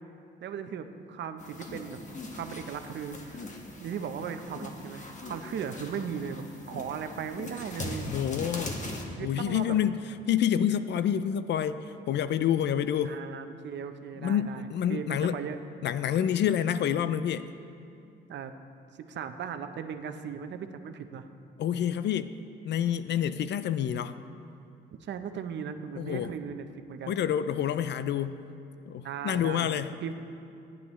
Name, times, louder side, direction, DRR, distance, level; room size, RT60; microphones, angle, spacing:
voice 1, 0.4-3.5 3.8-8.1 9.2-9.8 13.0-15.6 18.3-18.5 18.9-21.3 25.0-27.2 29.0-29.7 30.0-30.1, right 7 dB, 65° right, 8 dB, 0.8 m, -37 dB
sound 1, 1.4-9.0, left 2 dB, 40° left, 1.6 m, -40 dB
voice 2, 8.1-8.8 9.2-10.0 10.3-13.2 14.2-15.4 15.8-17.5 21.6-22.3 22.6-24.1 26.0-26.3 27.1-28.4 28.9-29.9, left 9 dB, 60° left, 13 dB, 0.4 m, -28 dB
18.0 x 10.0 x 3.2 m, 2.6 s
cardioid pair, 90°, 20 cm